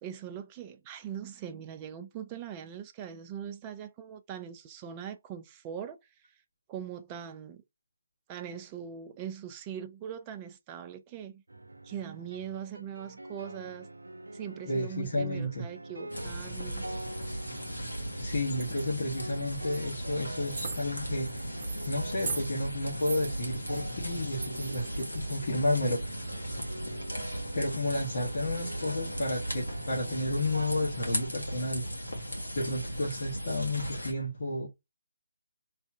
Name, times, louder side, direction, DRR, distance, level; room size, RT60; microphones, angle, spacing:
voice 1, 0.0-6.0 6.7-7.6 8.3-11.4 11.8-13.9 14.3-16.8, right 9 dB, 20° right, 0.5 m, -41 dB
sound 1, 11.5-31.3, right 2 dB, 80° right, 0.6 m, -44 dB
voice 2, 14.6-15.7 18.2-26.0 27.5-31.9 32.5-34.7, left 1 dB, 50° left, 1.5 m, -32 dB
sound 2, 16.1-34.1, equal, 85° left, 1.6 m, -37 dB
sound 3, 17.0-17.2 17.6-18.0 18.6-19.2 19.7-19.8 20.1-20.2 20.5-25.4, right 5 dB, 40° right, 0.9 m, -41 dB
3.4 x 2.6 x 3.4 m
figure-of-eight pair, 150°, 0 cm